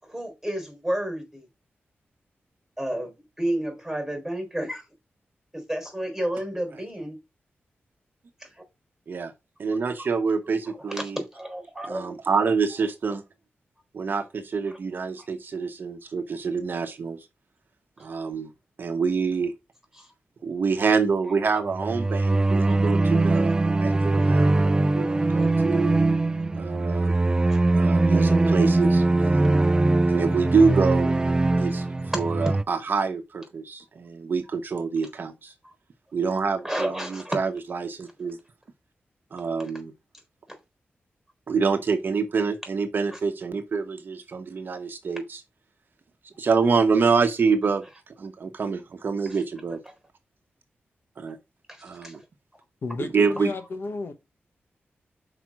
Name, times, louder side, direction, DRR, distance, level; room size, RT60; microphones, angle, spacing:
voice 1, 0.0-1.5 2.8-4.9 5.5-7.2 8.4-8.6 10.0-10.1 10.7-12.1 14.7-14.8 15.2-15.3 18.0-18.1 19.9-20.1 21.2-21.3 22.5-22.8 27.5-27.6 32.1-32.5 35.6-35.7 36.6-37.4 43.1-43.2 49.3-49.4 51.7-52.2, right 1 dB, ahead, 4.0 m, -31 dB
voice 2, 9.6-11.2 11.9-13.2 13.9-17.2 18.0-18.5 18.8-19.5 20.4-23.5 23.8-25.9 26.6-27.2 27.8-29.6 30.1-31.1 31.6-31.9 32.1-35.5 36.1-38.4 39.3-39.9 41.5-45.4 46.4-47.8 48.2-49.8 51.2-51.4 51.8-52.2 53.1-53.5, right 5 dB, 55° right, 0.9 m, -26 dB
sound 1, 21.7-32.6, right 2 dB, 20° right, 0.4 m, -21 dB
voice 3, 52.8-54.1, left 3 dB, 60° left, 1.1 m, -33 dB
5.9 x 4.9 x 6.1 m
wide cardioid pair, 150°, 4 cm